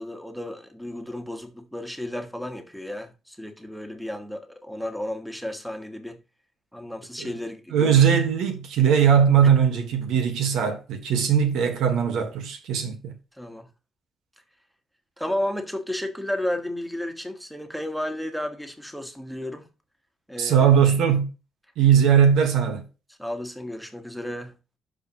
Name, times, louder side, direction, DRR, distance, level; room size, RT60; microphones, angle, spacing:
voice 1, 0.0-6.2 6.7-8.0 9.4-9.5 13.3-13.7 15.2-19.7 20.3-20.7 23.1-24.6, left 1 dB, ahead, 1.5 m, -33 dB
voice 2, 7.7-13.1 20.4-21.3 21.8-22.8, right 8 dB, 85° right, 1.5 m, -20 dB
12.0 x 5.0 x 3.0 m
cardioid pair, 90°, 0 cm